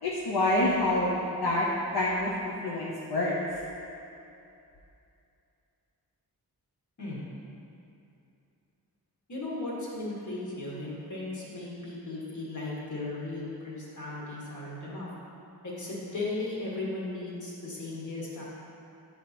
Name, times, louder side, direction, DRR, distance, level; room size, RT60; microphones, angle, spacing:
voice 1, 0.0-1.7 1.9-3.6, left 1 dB, 70° left, -5 dB, 0.8 m, -27 dB
voice 2, 9.3-15.1 15.6-18.4, left 2 dB, 50° left, -6 dB, 1.7 m, -36 dB
9.5 x 4.4 x 4.3 m, 2.7 s
wide cardioid pair, 165°, 39 cm